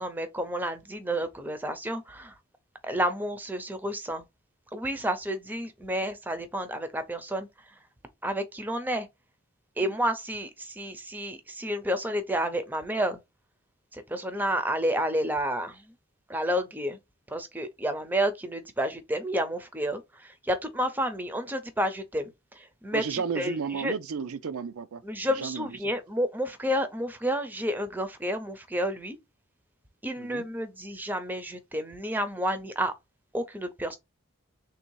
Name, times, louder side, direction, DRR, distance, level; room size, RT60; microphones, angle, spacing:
voice 1, 0.0-2.3 2.8-4.2 4.7-7.5 8.2-9.1 9.8-13.2 13.9-15.9 16.3-17.0 17.3-22.3 22.6-23.9 25.0-29.2 30.0-32.9 33.3-34.0, equal, 10° right, 0.6 m, -30 dB
voice 2, 22.9-25.0 25.3-25.9 30.2-30.5, right 6 dB, 85° right, 0.5 m, -33 dB
3.4 x 2.7 x 4.5 m
head